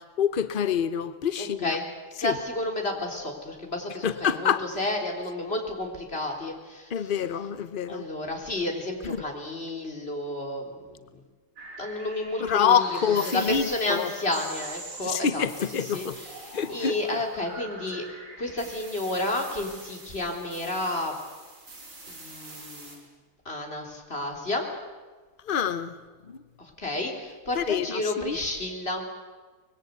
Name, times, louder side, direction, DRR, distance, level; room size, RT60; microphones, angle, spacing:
voice 1, 0.2-1.8 2.2-2.4 4.0-4.6 6.9-8.0 9.0-9.2 12.4-14.1 15.0-16.2 16.5-16.9 25.4-25.9 26.3-26.4 27.5-28.4, left 7 dB, 70° left, 0.5 m, -26 dB
voice 2, 1.4-1.9 2.2-7.1 7.9-11.2 11.8-13.0 13.3-15.4 15.8-18.0 18.4-21.2 22.1-23.0 23.5-24.7 26.6-29.1, left 2 dB, 30° left, 3.7 m, -31 dB
sound 1, 11.6-23.0, right 3 dB, 90° right, 6.3 m, -43 dB
24.5 x 21.0 x 8.1 m
omnidirectional pair, 2.2 m